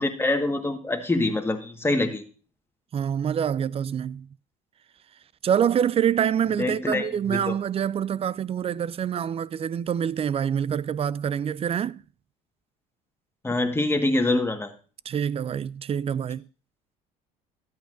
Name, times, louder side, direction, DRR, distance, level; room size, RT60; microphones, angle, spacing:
voice 1, 0.0-2.2 6.6-7.6 13.4-14.7, left 2 dB, 10° left, 1.5 m, -25 dB
voice 2, 2.9-4.3 5.4-12.0 15.1-16.4, right 8 dB, 30° right, 0.4 m, -26 dB
13.0 x 9.2 x 2.6 m
supercardioid pair, 80°, 19 cm